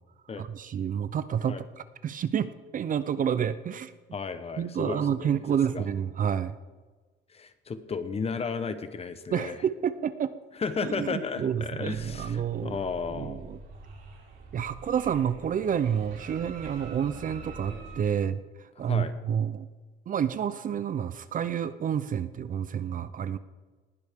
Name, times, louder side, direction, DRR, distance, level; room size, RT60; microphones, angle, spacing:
voice 1, 0.4-1.6 2.0-3.9 4.6-6.6 9.3-10.3 10.8-12.8 13.1-13.6 14.5-19.7 20.1-23.4, right 8 dB, 40° right, 13 dB, 0.6 m, -29 dB
voice 2, 4.1-5.4 5.7-5.8 7.3-9.6 10.6-13.4 18.9-19.1, left 5 dB, 30° left, 11 dB, 0.9 m, -34 dB
sound 1, 11.9-18.0, right 2 dB, 70° right, 4.3 m, -45 dB
19.5 x 11.0 x 3.6 m, 1.3 s
cardioid pair, 130°, 20 cm